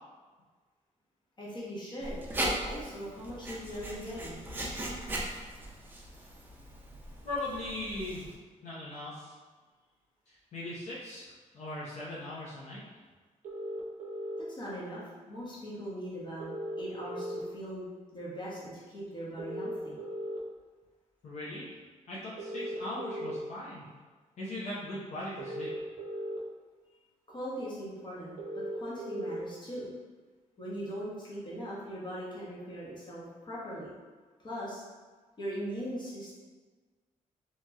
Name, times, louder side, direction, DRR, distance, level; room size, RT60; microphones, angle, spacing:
voice 1, 1.4-2.2 2.6-4.4 14.4-15.0 15.3-17.9 18.1-20.0 27.3-29.9 30.6-33.9 34.4-34.8 35.4-36.3, equal, 35° left, -7 dB, 0.9 m, -40 dB
Writing, 2.0-8.3, right 1 dB, 15° right, 0.4 m, -38 dB
voice 2, 7.2-8.3 8.6-9.3 10.3-12.8 21.2-21.7 22.1-23.9 24.4-25.7, left 1 dB, 60° left, -8 dB, 0.6 m, -39 dB
sound 1, 13.4-14.4 16.4-17.4 19.4-20.4 22.4-23.4 25.4-26.4 28.4-29.4, right 1 dB, 80° right, 0.5 m, -37 dB
2.9 x 2.7 x 2.3 m, 1.4 s
wide cardioid pair, 135°, 13 cm